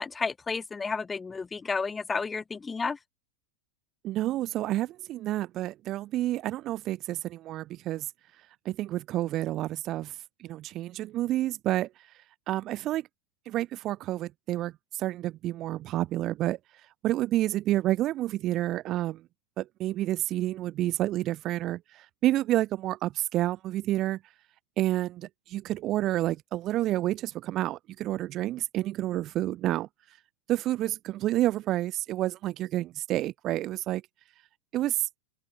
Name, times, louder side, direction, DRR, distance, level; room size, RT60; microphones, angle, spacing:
voice 1, 0.0-3.0, left 4 dB, 10° left, 0.7 m, -31 dB
voice 2, 4.0-8.1 8.6-10.1 10.4-11.9 12.5-13.1 13.5-16.6 17.0-19.2 19.6-24.2 24.8-29.9 30.5-34.0 34.7-35.1, right 14 dB, 30° right, 0.6 m, -29 dB
open air
supercardioid pair, 155°, 0 cm